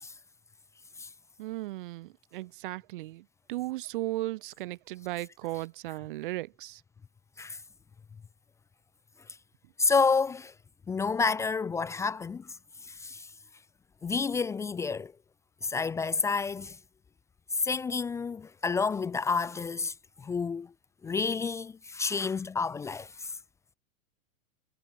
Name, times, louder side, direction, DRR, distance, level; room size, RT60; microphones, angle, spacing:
voice 1, 1.4-6.8, right 18 dB, 40° right, 1.1 m, -36 dB
voice 2, 9.8-10.5 10.9-12.5 12.8-13.3 14.0-15.1 15.6-16.8 17.5-20.7 21.0-23.4, left 4 dB, 5° left, 0.9 m, -30 dB
supercardioid pair, 170°, 42 cm